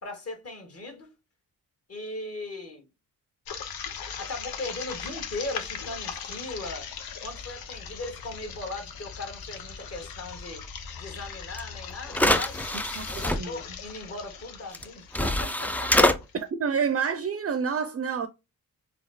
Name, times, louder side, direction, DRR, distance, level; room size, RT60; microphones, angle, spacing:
voice 1, 0.0-1.1 1.9-2.9 4.2-6.9 7.2-10.6 10.9-12.6 13.1-16.2, left 2 dB, 45° left, 1.5 m, -38 dB
sound 1, 3.5-16.3, left 7 dB, 90° left, 0.7 m, -39 dB
sound 2, 11.6-11.7 12.1-13.4 14.7-14.8 15.1-16.2, left 1 dB, 5° left, 0.3 m, -24 dB
voice 2, 13.0-13.5 16.3-18.3, right 6 dB, 40° right, 0.6 m, -28 dB
4.2 x 2.7 x 2.2 m
cardioid pair, 75°, 35 cm